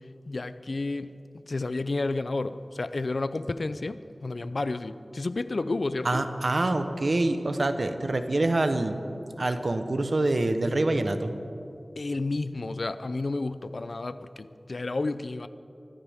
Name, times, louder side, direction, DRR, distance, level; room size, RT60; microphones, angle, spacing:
voice 1, 0.3-1.1 1.5-6.2 12.0-15.5, left 2 dB, 70° left, 13 dB, 0.5 m, -31 dB
voice 2, 6.0-9.0 9.4-11.3, right 2 dB, 60° right, 8 dB, 1.0 m, -26 dB
24.5 x 14.5 x 3.6 m, 2.7 s
wide cardioid pair, 55°, 0 cm